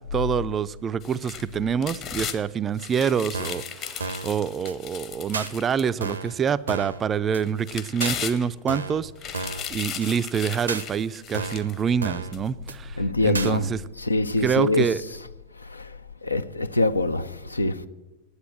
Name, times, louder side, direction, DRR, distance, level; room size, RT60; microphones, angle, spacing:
voice 1, 0.1-9.1 9.7-13.8 14.4-15.0, right 7 dB, 25° right, 0.4 m, -26 dB
sound 1, 1.0-2.4 2.8-6.2 6.7-6.8 7.4-8.8 9.2-11.8 12.3-12.4, left 8 dB, 35° left, 1.0 m, -36 dB
sound 2, 3.3-3.7 4.0-4.3 4.7-4.8 5.3-5.5 6.0-6.3 6.7-7.0 7.3-7.4 8.0-8.2 8.7-9.0 9.3-9.7 10.0-10.1 10.7-10.8 11.3-11.7 12.0-12.3 12.7-12.8 13.3-13.5, right 3 dB, 75° right, 0.7 m, -32 dB
voice 2, 13.0-13.6 14.0-14.9 16.2-17.9, left 2 dB, 80° left, 0.5 m, -24 dB
9.7 x 8.1 x 8.7 m
figure-of-eight pair, 90°, 0 cm